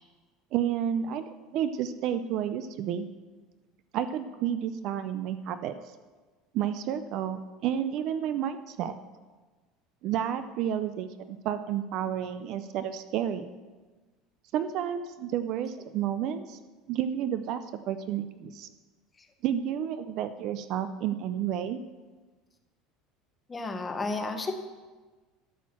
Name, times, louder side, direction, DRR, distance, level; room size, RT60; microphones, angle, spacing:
voice 1, 0.5-3.1 3.9-5.8 6.5-8.9 10.0-13.5 14.5-16.6 16.9-18.7 19.4-21.8, right 9 dB, 40° right, 11 dB, 0.4 m, -31 dB
voice 2, 23.5-24.5, left 3 dB, 15° left, 6 dB, 0.7 m, -32 dB
12.5 x 4.5 x 7.2 m, 1.3 s
cardioid pair, 180°, 0 cm